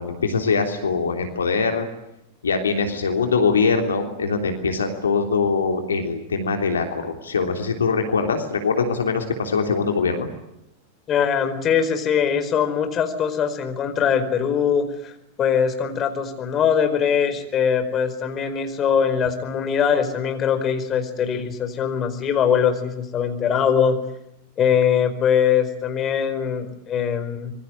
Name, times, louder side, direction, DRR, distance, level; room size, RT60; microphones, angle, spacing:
voice 1, 0.0-1.9 2.4-10.3, left 5 dB, 70° left, 5 dB, 3.3 m, -22 dB
voice 2, 11.1-15.1 15.4-24.0 24.6-27.5, left 7 dB, 30° left, 8 dB, 4.8 m, -22 dB
26.5 x 23.0 x 8.0 m, 0.83 s
figure-of-eight pair, 90°, 0 cm